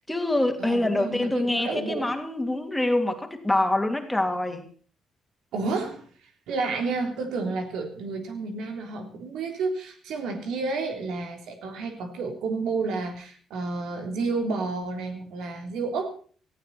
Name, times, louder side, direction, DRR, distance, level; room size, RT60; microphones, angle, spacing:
voice 1, 0.1-4.6, left 1 dB, 10° left, 5 dB, 2.8 m, -25 dB
voice 2, 0.6-2.1 5.5-6.1 6.5-16.1, right 3 dB, 85° right, 5 dB, 3.5 m, -30 dB
18.5 x 15.0 x 4.3 m, 0.42 s
cardioid pair, 90°, 0 cm